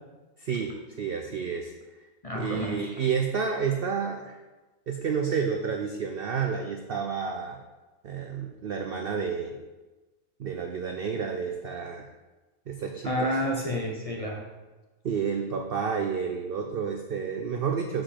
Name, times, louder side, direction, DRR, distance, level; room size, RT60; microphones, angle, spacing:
voice 1, 0.4-1.7 2.3-4.4 4.9-7.6 8.0-9.6 10.4-12.1 12.7-13.4 15.0-18.0, right 6 dB, 85° right, 3 dB, 0.5 m, -30 dB
voice 2, 2.2-3.0 13.0-14.5, left 1 dB, 35° left, -1 dB, 0.6 m, -30 dB
7.3 x 5.3 x 4.3 m, 1.2 s
omnidirectional pair, 1.6 m